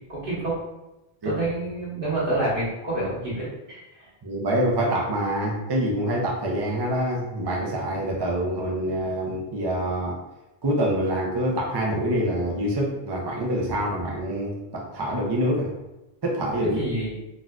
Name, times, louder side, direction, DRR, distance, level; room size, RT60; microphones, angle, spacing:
voice 1, 0.1-0.6 1.2-4.1 16.7-17.1, right 1 dB, 55° right, -7 dB, 1.4 m, -28 dB
voice 2, 4.2-10.2 10.6-15.7 16.2-16.8, right 1 dB, 35° right, -2 dB, 0.4 m, -26 dB
4.0 x 2.4 x 2.3 m, 0.97 s
omnidirectional pair, 1.1 m